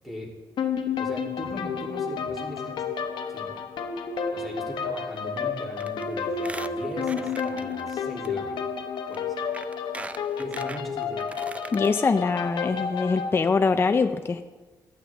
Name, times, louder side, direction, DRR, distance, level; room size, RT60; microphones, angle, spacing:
voice 1, 0.0-0.4 1.0-2.9 3.3-3.6 4.3-8.6 9.1-9.4 10.4-11.3, left 1 dB, ahead, -5 dB, 3.1 m, -39 dB
sound 1, 0.6-13.4, left 6 dB, 90° left, 0.9 m, -31 dB
Squeak, 5.8-6.0 6.3-7.9 8.2-8.3 9.1-9.2 9.5-11.9 12.3-12.4 12.6-12.7, right 2 dB, 15° right, 0.4 m, -40 dB
voice 2, 11.7-14.4, left 4 dB, 30° left, 7 dB, 0.5 m, -23 dB
14.5 x 11.5 x 3.5 m, 1.2 s
cardioid pair, 120°, 8 cm